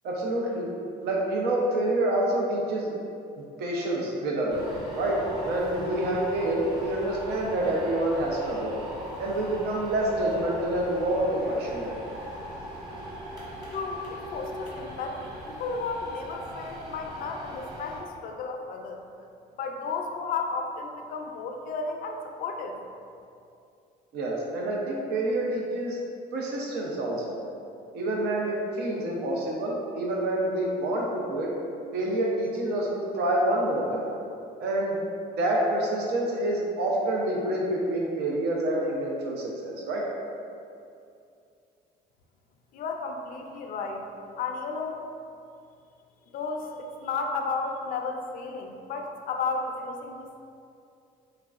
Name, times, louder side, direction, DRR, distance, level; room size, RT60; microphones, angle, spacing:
voice 1, 0.0-0.7 1.0-2.9 3.4-4.7 4.9-5.2 5.4-8.8 9.2-11.9 24.1-26.0 26.3-27.4 27.9-31.5 31.9-34.1 34.6-35.0 35.4-40.0, right 1 dB, 75° right, -2 dB, 0.6 m, -27 dB
sound 1, 4.5-18.0, equal, 25° right, 1.1 m, -40 dB
voice 2, 13.7-19.0 19.6-22.8 42.7-44.1 44.4-45.1 46.3-50.4, left 4 dB, 55° left, 3 dB, 0.4 m, -33 dB
3.5 x 3.2 x 2.4 m, 2.5 s
cardioid pair, 110°, 17 cm